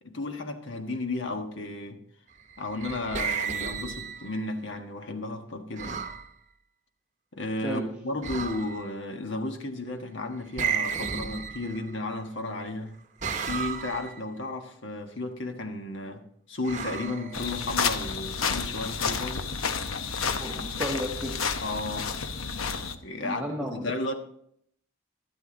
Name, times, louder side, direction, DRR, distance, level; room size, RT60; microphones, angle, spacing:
voice 1, 0.0-2.0 2.6-6.0 7.3-12.9 13.4-19.5 20.7-20.9 21.6-22.1 23.0-24.2, left 2 dB, 60° left, 1.4 m, -34 dB
sound 1, 2.5-4.5 5.8-6.3 8.2-9.0 10.6-12.0 13.2-14.2 16.6-17.8, right 6 dB, 35° right, 0.9 m, -33 dB
voice 2, 7.6-8.0 20.4-21.5 23.2-23.8, equal, 5° right, 0.9 m, -33 dB
sound 2, 17.3-22.9, left 5 dB, 90° left, 0.9 m, -30 dB
12.5 x 12.0 x 3.9 m
head